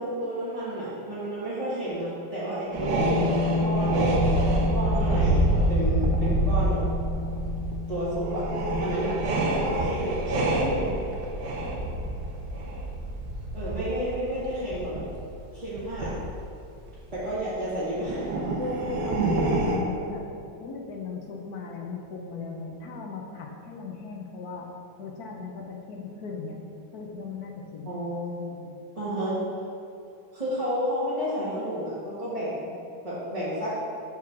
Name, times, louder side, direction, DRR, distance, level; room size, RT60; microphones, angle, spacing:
voice 1, 0.0-4.1 4.7-6.8 7.9-8.5 8.8-9.2 9.6-10.9 13.5-14.9 15.5-16.1 17.1-18.4 27.9-28.6 29.0-29.4 30.3-32.7 33.0-33.7, equal, 20° right, -13 dB, 1.8 m, -31 dB
sound 1, 2.7-16.3 16.9-17.3 17.9-19.8, right 1 dB, 85° right, 1.6 m, -27 dB
Bass guitar, 3.0-9.2, left 3 dB, 85° left, 1.4 m, -31 dB
voice 2, 18.6-20.2 20.6-24.7 25.0-26.6 26.9-27.9, left 4 dB, 65° left, 1 dB, 1.3 m, -37 dB
7.1 x 4.7 x 6.0 m, 2.6 s
omnidirectional pair, 1.8 m